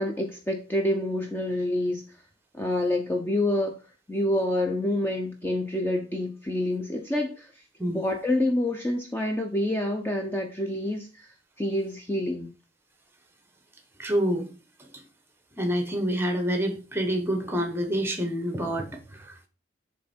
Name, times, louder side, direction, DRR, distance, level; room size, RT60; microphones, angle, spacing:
voice 1, 0.0-2.0 2.5-3.8 4.1-7.6 7.9-12.5, left 1 dB, 10° left, 2 dB, 0.5 m, -27 dB
voice 2, 14.0-14.5 14.8-14.9 15.6-19.5, equal, 10° right, 5 dB, 0.9 m, -27 dB
7.6 x 3.2 x 4.3 m, 0.35 s
head